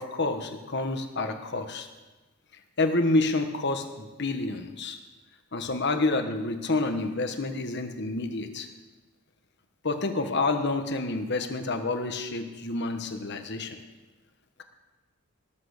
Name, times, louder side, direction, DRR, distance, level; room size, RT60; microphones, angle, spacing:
voice 1, 0.0-1.9 2.8-5.0 5.5-8.7 9.8-13.8, left 2 dB, 55° left, 7 dB, 1.3 m, -28 dB
18.0 x 7.6 x 6.6 m, 1.2 s
head